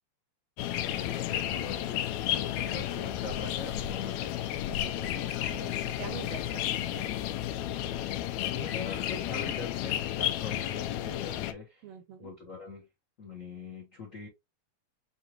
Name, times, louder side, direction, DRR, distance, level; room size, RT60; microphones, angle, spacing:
sound 1, 0.6-11.5, left 12 dB, 80° left, 1.8 m, -32 dB
voice 1, 0.7-4.3 8.5-11.9 12.2-12.8 13.2-14.3, left 3 dB, 60° left, 0.8 m, -43 dB
voice 2, 4.8-7.2 11.8-12.3, right 10 dB, 80° right, 1.5 m, -45 dB
6.3 x 2.6 x 2.9 m
omnidirectional pair, 3.3 m